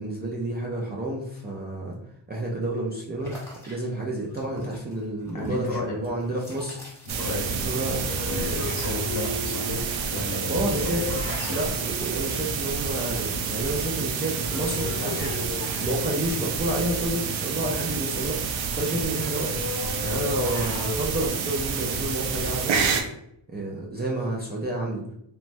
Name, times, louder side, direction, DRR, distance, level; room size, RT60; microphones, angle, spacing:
voice 1, 0.0-2.0 2.3-3.4 3.7-6.8 7.6-8.0 10.5-11.0 11.5-19.7 20.0-22.9 23.5-25.0, right 1 dB, 25° right, -4 dB, 0.4 m, -30 dB
sound 1, 3.2-7.7 8.0-9.6 9.9-10.9, equal, 5° left, 0.8 m, -42 dB
voice 2, 5.3-6.0 7.0-10.5 11.1-11.6 18.8-19.0, left 2 dB, 45° left, 0 dB, 0.8 m, -33 dB
sound 2, 7.1-23.0, right 5 dB, 80° right, 0.6 m, -29 dB
sound 3, 8.0-13.0 14.3-16.8 19.3-21.1, left 5 dB, 80° left, 0.6 m, -36 dB
3.1 x 2.1 x 2.5 m, 0.75 s
cardioid pair, 115°, 46 cm